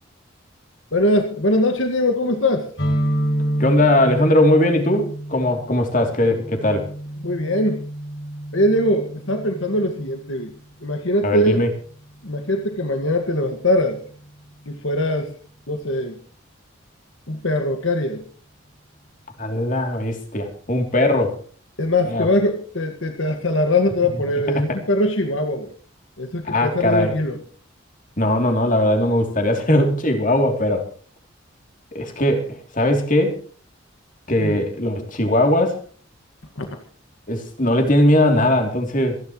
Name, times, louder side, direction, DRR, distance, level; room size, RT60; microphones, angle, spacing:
voice 1, 0.9-2.7 7.2-7.8 8.5-10.5 10.8-11.7 12.2-14.0 14.7-15.3 15.7-16.1 17.3-18.2 21.8-25.7 26.2-27.4 34.4-34.6 36.6-36.7, left 1 dB, 80° left, 5 dB, 1.8 m, -21 dB
sound 1, 2.8-10.4, right 1 dB, 60° left, 6.8 m, -28 dB
voice 2, 3.6-6.9 11.2-11.7 19.4-21.4 22.0-22.3 26.4-27.1 28.2-30.8 31.9-33.3 34.3-35.8 37.3-39.2, left 1 dB, 40° left, 4 dB, 3.0 m, -19 dB
27.0 x 11.0 x 3.1 m, 0.42 s
head